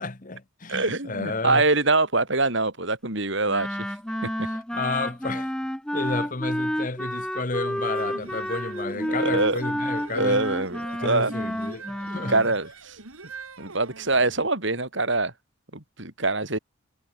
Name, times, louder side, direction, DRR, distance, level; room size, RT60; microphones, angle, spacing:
voice 1, 0.0-1.7 4.4-5.5 5.9-10.4 11.0-12.3, left 3 dB, 40° left, 1.3 m, -31 dB
voice 2, 0.7-3.9 4.2-4.5 9.1-9.6 10.1-11.3 12.3-13.0 13.6-15.3 15.7-16.6, right 3 dB, 55° right, 3.6 m, -24 dB
Wind instrument woodwind instrument, 3.5-12.5, equal, 5° left, 0.7 m, -30 dB
sound 1, 7.7-14.5, right 3 dB, 80° right, 4.1 m, -43 dB
head